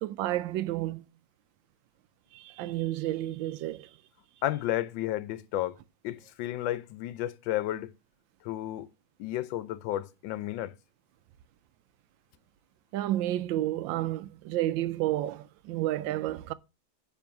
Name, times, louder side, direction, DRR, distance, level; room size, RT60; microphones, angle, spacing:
voice 1, 0.0-1.0 2.3-3.9 12.9-16.5, right 14 dB, 75° right, 1.2 m, -31 dB
voice 2, 4.4-5.8 6.0-7.9 8.4-8.9 9.2-10.7, left 13 dB, 75° left, 1.2 m, -32 dB
10.0 x 3.5 x 5.7 m
omnidirectional pair, 2.3 m